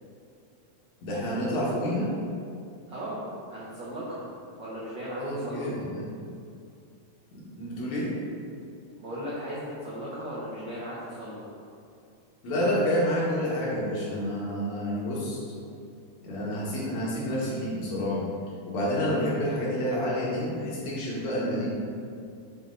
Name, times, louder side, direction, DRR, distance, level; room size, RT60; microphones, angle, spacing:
voice 1, 1.0-2.2 5.2-6.1 7.3-8.2 12.4-15.4 16.2-18.3 18.7-21.7, equal, 65° left, -6 dB, 2.3 m, -29 dB
voice 2, 2.9-4.2 4.6-5.7 9.0-11.4, equal, 75° right, -8 dB, 1.0 m, -36 dB
7.3 x 3.4 x 3.8 m, 2.4 s
omnidirectional pair, 3.6 m